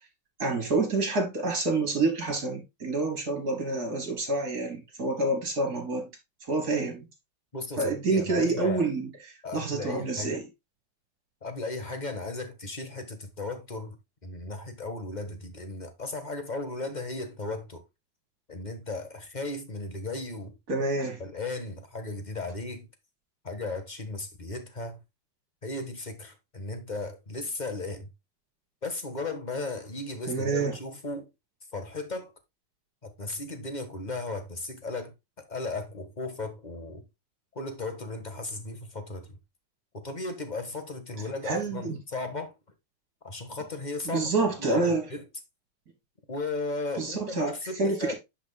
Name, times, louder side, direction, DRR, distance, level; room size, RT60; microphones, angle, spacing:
voice 1, 0.4-6.1 6.4-7.1 7.8-9.1 9.5-10.5 20.7-21.2 30.3-30.7 41.5-42.0 44.1-45.1 47.0-47.5 47.8-48.1, right 3 dB, 45° right, 3.5 m, -27 dB
voice 2, 7.5-8.9 9.4-10.4 11.4-17.8 18.5-20.5 21.2-22.9 23.4-25.0 25.6-28.1 28.8-31.3 31.7-32.3 33.0-37.1 37.5-39.4 39.9-42.5 43.2-44.3 44.6-45.2 46.3-48.1, left 2 dB, 25° left, 1.2 m, -36 dB
10.5 x 6.2 x 2.2 m
omnidirectional pair, 2.4 m